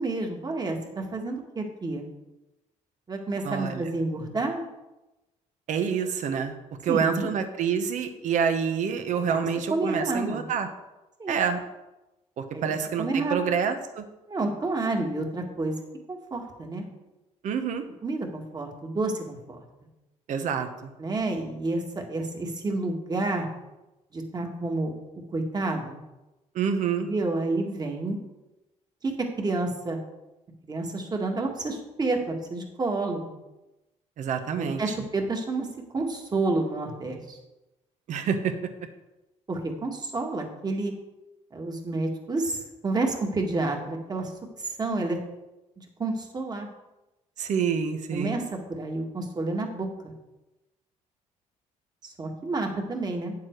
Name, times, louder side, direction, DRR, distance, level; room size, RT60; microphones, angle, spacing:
voice 1, 0.0-2.1 3.1-4.6 6.9-7.3 9.3-10.5 11.2-11.4 12.5-13.4 14.3-15.8 16.1-16.9 18.0-19.6 21.0-21.8 22.1-23.5 24.1-25.0 25.3-26.0 27.0-28.2 29.0-29.1 29.4-30.0 30.6-33.3 34.6-35.7 35.9-37.4 39.5-40.9 41.5-44.3 44.8-45.2 45.8-46.7 48.1-48.4 48.7-50.1 52.0-53.4, right 2 dB, 30° right, 2 dB, 2.0 m, -29 dB
voice 2, 3.4-3.9 5.7-6.6 6.8-10.7 11.3-11.6 12.4-14.0 17.4-17.8 20.3-20.9 26.5-27.1 34.2-34.9 38.1-38.5 47.4-48.4, right 7 dB, 70° right, 7 dB, 1.2 m, -27 dB
9.2 x 7.4 x 4.7 m, 1.0 s
cardioid pair, 90°, 13 cm